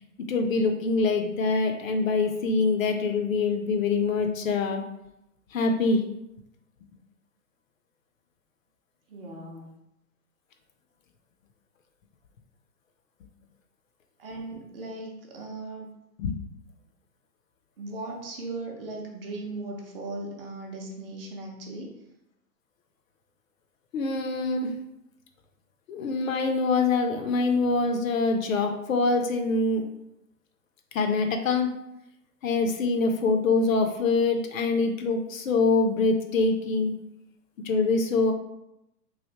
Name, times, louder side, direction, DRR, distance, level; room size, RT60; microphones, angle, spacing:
voice 1, 0.3-4.8 5.5-6.0 16.2-16.3 23.9-24.7 25.9-29.8 30.9-31.7 32.4-36.9 37.6-38.3, left 3 dB, 55° left, 5 dB, 0.5 m, -24 dB
voice 2, 9.1-9.7 14.2-15.9 17.8-21.9, right 2 dB, 35° right, -1 dB, 0.6 m, -38 dB
3.1 x 2.6 x 2.8 m, 0.85 s
hypercardioid pair, 130°, 49 cm